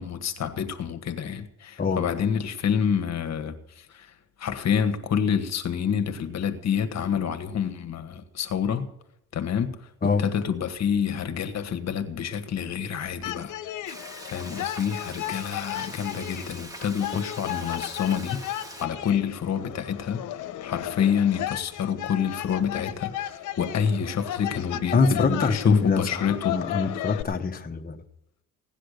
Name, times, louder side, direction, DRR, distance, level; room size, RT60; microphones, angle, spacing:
voice 1, 0.0-8.9 9.3-13.5 14.2-26.6, left 7 dB, 60° left, 1.5 m, -28 dB
sound 1, 13.2-27.2, left 12 dB, 80° left, 1.0 m, -35 dB
Frying (food), 13.9-18.9, right 1 dB, 10° right, 1.7 m, -43 dB
voice 2, 24.9-26.2 26.5-28.0, left 4 dB, 30° left, 1.3 m, -24 dB
17.0 x 10.0 x 6.6 m
cardioid pair, 90°, 30 cm